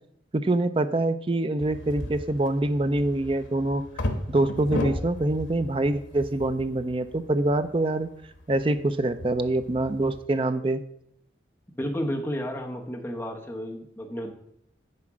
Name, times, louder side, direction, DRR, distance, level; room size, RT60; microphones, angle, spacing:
voice 1, 0.3-3.8 4.3-8.1 8.5-10.8, right 2 dB, 30° right, 10 dB, 0.4 m, -25 dB
sound 1, 1.6-10.2, left 1 dB, 90° left, 1.2 m, -36 dB
voice 2, 11.7-14.3, equal, 10° left, 1 dB, 1.0 m, -32 dB
9.7 x 4.4 x 6.1 m, 0.72 s
head